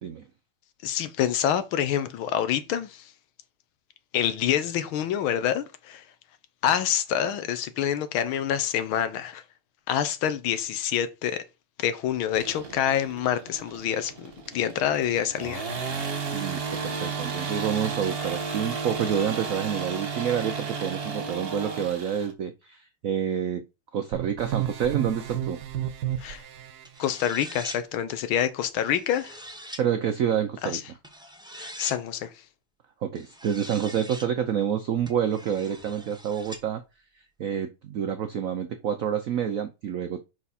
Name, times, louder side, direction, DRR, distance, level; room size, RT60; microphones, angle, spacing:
voice 1, 0.8-3.1 4.1-6.0 6.6-9.4 9.9-11.4 11.8-15.6 26.2-26.4 27.0-29.4 30.6-30.8 31.6-32.3, left 10 dB, 85° left, 1.7 m, -27 dB
sound 1, 12.3-22.3, right 5 dB, 35° right, 1.1 m, -33 dB
voice 2, 16.3-23.6 23.9-25.6 29.8-30.8 33.0-36.8 37.4-40.2, right 8 dB, 75° right, 0.7 m, -28 dB
sound 2, 24.1-26.8, right 11 dB, 60° right, 1.2 m, -31 dB
sound 3, 26.8-27.8 28.8-29.8 31.0-32.0 33.2-34.3 35.1-36.6, right 1 dB, 5° right, 0.8 m, -43 dB
5.7 x 4.7 x 4.2 m
omnidirectional pair, 2.2 m